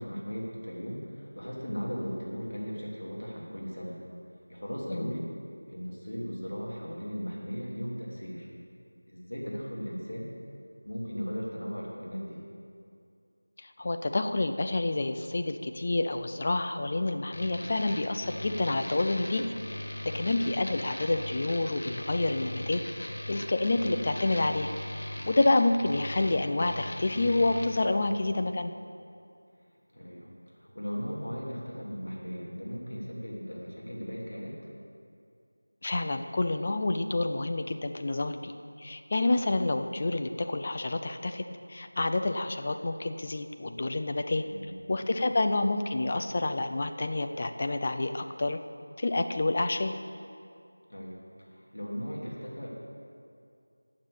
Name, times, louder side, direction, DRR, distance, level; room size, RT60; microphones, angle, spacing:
voice 1, 0.0-4.0 4.5-5.3 5.7-8.5 9.1-10.3 10.8-12.4 20.0-20.3 27.9-28.3 29.9-34.7 44.4-44.8 50.9-52.7, equal, 85° left, -4 dB, 2.9 m, -37 dB
voice 2, 13.6-19.4 20.0-22.8 23.3-24.7 25.0-28.7 35.8-41.4 41.7-44.4 44.9-48.6 49.0-49.9, left 2 dB, 25° left, 7 dB, 0.4 m, -28 dB
sound 1, 17.3-27.7, left 1 dB, 40° left, 1.1 m, -39 dB
9.1 x 7.3 x 8.5 m, 2.4 s
figure-of-eight pair, 175°, 0 cm